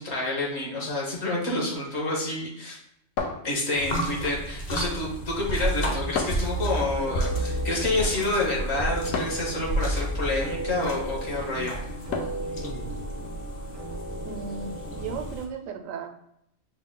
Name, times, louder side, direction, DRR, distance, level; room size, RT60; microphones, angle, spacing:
voice 1, 0.0-2.8 3.4-11.8, left 2 dB, 60° left, -2 dB, 1.4 m, -28 dB
sound 1, 3.2-4.1 6.1-6.6 9.1-9.5 12.1-12.6, left 4 dB, 85° left, 1.1 m, -31 dB
sound 2, 3.8-15.5, right 1 dB, 45° left, 0.6 m, -32 dB
sound 3, 6.5-15.3, right 1 dB, 20° right, 0.4 m, -37 dB
voice 2, 14.2-16.1, right 6 dB, 90° right, 6 dB, 1.0 m, -35 dB
5.5 x 2.1 x 3.7 m, 0.76 s
omnidirectional pair, 1.3 m